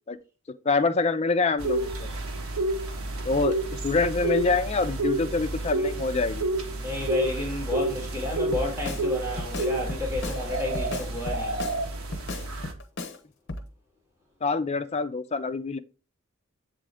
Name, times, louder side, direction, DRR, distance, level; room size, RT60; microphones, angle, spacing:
voice 1, 0.6-2.1 3.2-3.6 3.8-6.5 14.4-15.8, left 3 dB, 30° left, 0.4 m, -25 dB
sound 1, 1.6-12.7, right 2 dB, 85° right, 1.0 m, -30 dB
voice 2, 6.8-11.5, left 2 dB, 15° right, 2.0 m, -31 dB
Drum kit, 8.5-9.1 9.4-10.4 10.7-11.8 12.1-13.2 13.5-13.7, left 2 dB, 55° left, 0.8 m, -35 dB
7.5 x 3.8 x 3.5 m
head